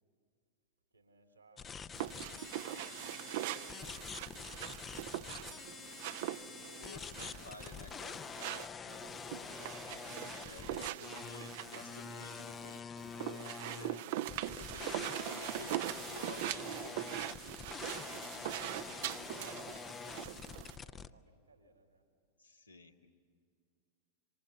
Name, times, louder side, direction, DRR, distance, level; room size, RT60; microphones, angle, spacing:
voice 1, 0.9-4.1 5.2-6.3 8.8-11.4 18.8-22.0, right 2 dB, 80° right, 4 dB, 3.0 m, -63 dB
sound 1, 1.6-21.1, left 6 dB, 20° left, 0.6 m, -46 dB
sound 2, 2.0-20.8, right 14 dB, 50° right, 0.6 m, -42 dB
voice 2, 6.8-8.7 10.4-12.9 13.2-14.2 14.4-17.0 22.4-23.1, left 3 dB, 85° left, 2 dB, 2.0 m, -53 dB
27.5 x 25.5 x 6.9 m, 2.3 s
figure-of-eight pair, 90°, 0 cm